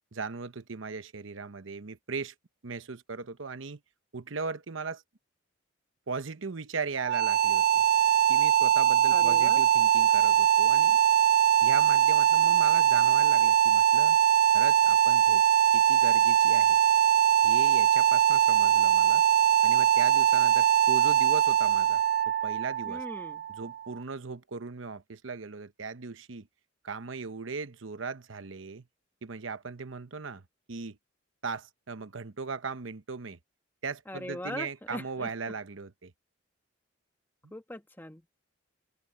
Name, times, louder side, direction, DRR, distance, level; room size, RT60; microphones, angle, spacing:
voice 1, 0.1-2.3 2.6-3.8 4.1-5.0 6.1-7.8 8.3-11.0 11.6-14.2 14.5-15.4 15.7-16.8 17.4-19.2 19.6-23.0 23.5-26.5 26.8-28.9 29.2-30.4 30.7-31.0 31.4-33.4 33.8-36.1, right 4 dB, 75° right, 0.9 m, -38 dB
sound 1, 7.0-23.9, right 10 dB, 50° right, 0.4 m, -22 dB
voice 2, 9.1-9.6 22.9-23.4 34.1-35.3 37.5-38.2, left 1 dB, 10° left, 1.5 m, -40 dB
open air
head